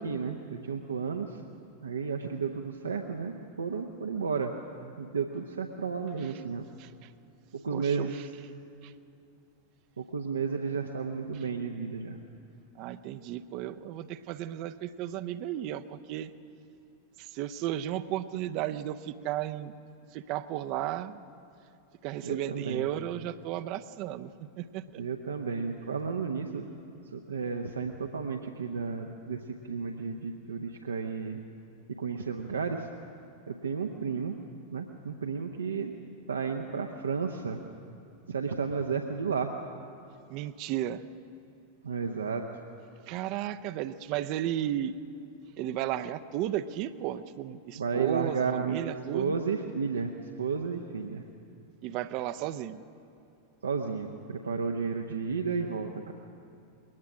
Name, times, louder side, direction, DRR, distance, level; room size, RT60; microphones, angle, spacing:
voice 1, 0.0-1.4 1.8-4.5 5.0-6.6 7.6-8.2 10.0-12.2 22.2-22.8 25.0-26.7 27.1-31.4 32.0-32.9 33.5-34.4 34.7-35.9 36.3-37.6 38.3-39.5 41.8-42.4 47.7-50.1 50.4-51.2 53.6-56.1, right 5 dB, 70° right, 4 dB, 0.8 m, -32 dB
voice 2, 6.8-7.1 7.7-8.1 8.8-8.9 12.8-16.3 17.2-19.7 20.1-21.2 22.0-24.3 24.6-25.0 40.3-41.0 43.1-44.9 45.6-49.4 51.8-52.8, right 12 dB, 45° right, 11 dB, 0.6 m, -34 dB
21.5 x 19.5 x 6.2 m, 2.7 s
figure-of-eight pair, 90°, 0 cm